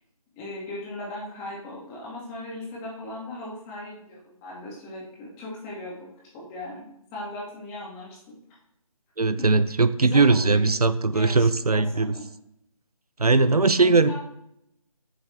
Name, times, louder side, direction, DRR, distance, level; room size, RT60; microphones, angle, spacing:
voice 1, 0.4-6.1 6.3-8.2 9.4-9.5 10.0-10.7 11.1-12.2 13.8-14.1, left 2 dB, 10° left, -4 dB, 2.1 m, -38 dB
voice 2, 9.2-12.1 13.2-14.1, right 3 dB, 85° right, 14 dB, 0.8 m, -20 dB
14.5 x 7.9 x 3.4 m, 0.79 s
figure-of-eight pair, 160°, 19 cm